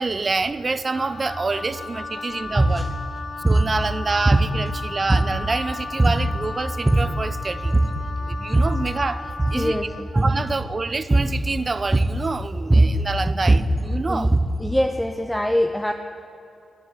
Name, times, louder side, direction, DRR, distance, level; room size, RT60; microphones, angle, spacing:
voice 1, 0.0-2.9 3.4-7.7 8.3-9.8 10.1-14.3, right 3 dB, 40° right, 14 dB, 0.5 m, -27 dB
Wind instrument woodwind instrument, 0.9-10.1, left 4 dB, 65° left, 0.8 m, -35 dB
voice 2, 2.5-2.9 9.5-10.1 14.1-14.3 14.6-15.9, left 1 dB, 10° left, 5 dB, 0.6 m, -24 dB
sound 1, 2.5-2.8 3.4-3.7 4.2-4.8 5.1-5.6 6.0-6.3 6.7-7.2 7.6-8.0 8.3-8.9 9.3-9.7 10.1-10.5 11.1-11.4 11.9-12.3 12.6-14.6, right 2 dB, 25° right, 0.9 m, -19 dB
9.6 x 7.4 x 7.5 m, 2.6 s
supercardioid pair, 40°, 0 cm